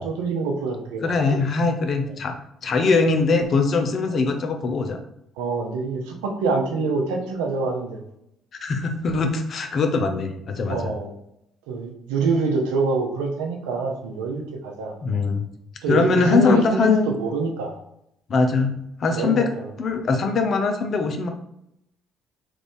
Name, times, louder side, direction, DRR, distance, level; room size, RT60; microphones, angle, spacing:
voice 1, 0.0-1.4 2.1-2.2 5.4-8.0 10.7-11.1 11.7-14.9 15.8-17.8 19.1-19.7, right 4 dB, 80° right, 1 dB, 0.6 m, -25 dB
voice 2, 1.0-2.3 2.6-5.0 8.6-10.8 15.0-15.4 15.9-17.2 18.3-18.7 19.0-19.5 19.8-21.3, left 4 dB, 50° left, 5 dB, 0.6 m, -21 dB
3.2 x 2.6 x 3.5 m, 0.78 s
hypercardioid pair, 55°, 0 cm